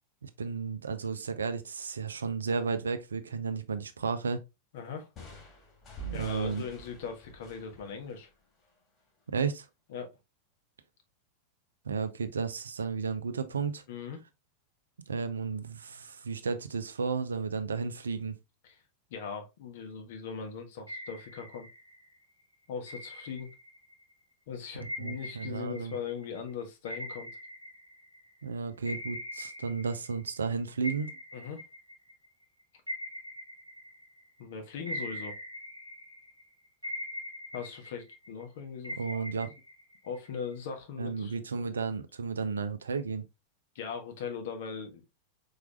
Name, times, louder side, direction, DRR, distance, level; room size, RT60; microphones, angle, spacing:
voice 1, 0.2-4.4 6.0-6.6 9.3-9.7 11.8-13.8 15.1-18.4 24.7-25.9 28.4-31.2 39.0-39.5 41.0-43.3, right 5 dB, 70° right, 0.6 m, -33 dB
voice 2, 4.7-5.1 6.1-8.3 9.9-10.1 13.9-14.2 18.6-18.8 19.1-21.7 22.7-23.5 24.5-27.3 31.3-31.6 34.4-35.4 37.5-39.5 40.0-41.4 43.7-45.2, left 6 dB, 55° left, 1.3 m, -40 dB
sound 1, 5.2-8.8, right 4 dB, 30° left, 2.4 m, -46 dB
sound 2, 20.9-22.1 22.9-24.0 24.8-28.4 28.8-30.5 30.8-34.4 34.9-36.4 36.8-38.4 38.8-40.5, left 1 dB, 90° left, 0.9 m, -42 dB
4.7 x 4.6 x 2.4 m
figure-of-eight pair, 90°, 0 cm